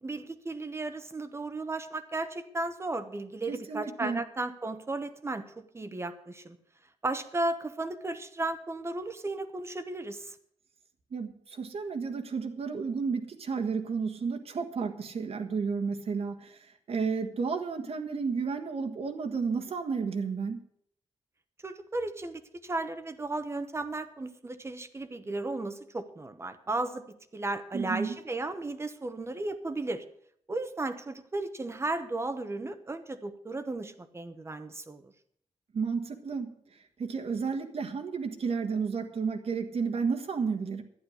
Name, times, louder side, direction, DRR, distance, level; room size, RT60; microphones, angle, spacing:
voice 1, 0.0-5.5 5.7-6.6 7.0-10.4 21.6-30.1 30.5-35.1, right 2 dB, 25° right, 9 dB, 0.9 m, -35 dB
voice 2, 3.5-4.2 11.1-20.6 27.7-28.2 35.7-40.8, right 5 dB, 60° right, 5 dB, 1.5 m, -32 dB
11.5 x 10.0 x 6.5 m, 0.69 s
wide cardioid pair, 155°, 11 cm